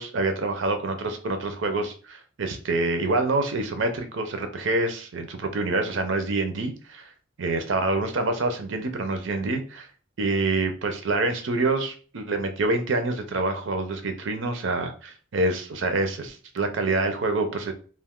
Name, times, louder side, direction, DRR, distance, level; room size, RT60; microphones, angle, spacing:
voice 1, 0.0-7.1 7.4-9.9 10.2-17.7, right 2 dB, 75° right, 7 dB, 0.5 m, -26 dB
2.4 x 2.3 x 3.5 m, 0.40 s
head